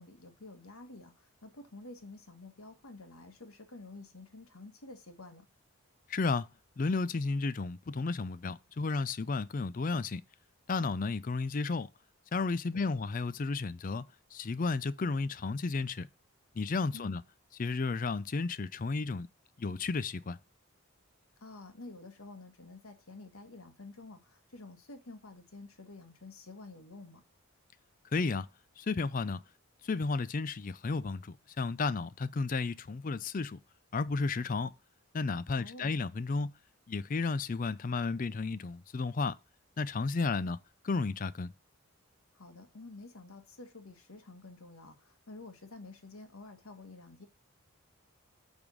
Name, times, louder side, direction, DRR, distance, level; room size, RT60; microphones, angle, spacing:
voice 1, 0.0-5.5 12.7-13.1 16.9-17.2 21.4-27.2 35.6-35.9 42.3-47.3, left 2 dB, 80° left, 1.5 m, -50 dB
voice 2, 6.1-6.5 6.8-10.2 10.7-11.9 12.3-16.1 16.5-17.2 17.6-19.3 19.6-20.4 28.1-28.5 28.8-29.4 29.8-33.6 33.9-34.7 35.1-36.6 36.9-39.4 39.8-40.6 40.8-41.5, left 4 dB, 40° left, 0.4 m, -33 dB
8.6 x 3.6 x 6.2 m
head